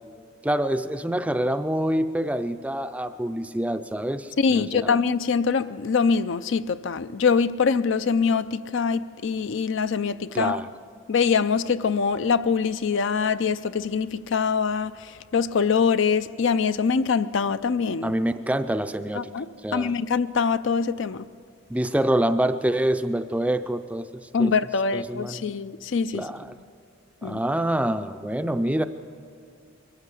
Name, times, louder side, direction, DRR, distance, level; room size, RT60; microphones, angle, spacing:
voice 1, 0.4-4.9 10.3-10.7 18.0-19.3 19.6-19.9 21.7-24.1 24.4-24.5 24.9-25.4 26.1-26.5 27.2-28.8, right 1 dB, 5° right, 0.5 m, -26 dB
voice 2, 4.4-10.6 11.1-18.1 19.1-21.3 24.3-26.2 27.2-27.4, left 5 dB, 60° left, 0.4 m, -24 dB
22.5 x 14.5 x 8.3 m
head